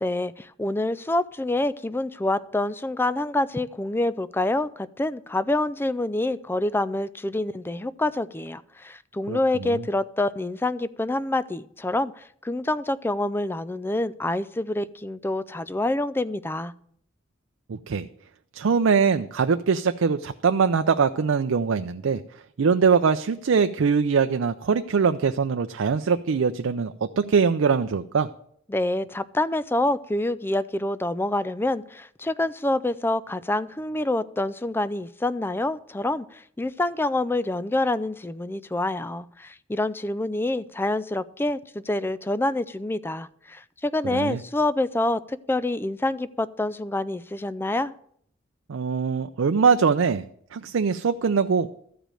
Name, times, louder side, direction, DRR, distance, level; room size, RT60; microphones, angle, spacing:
voice 1, 0.0-16.7 28.7-47.9, left 2 dB, 10° left, 16 dB, 0.4 m, -27 dB
voice 2, 9.3-9.8 17.7-18.1 18.5-22.2 22.6-28.3 44.0-44.4 48.7-51.7, right 5 dB, 80° right, 9 dB, 0.5 m, -22 dB
13.5 x 5.1 x 8.9 m, 0.66 s
head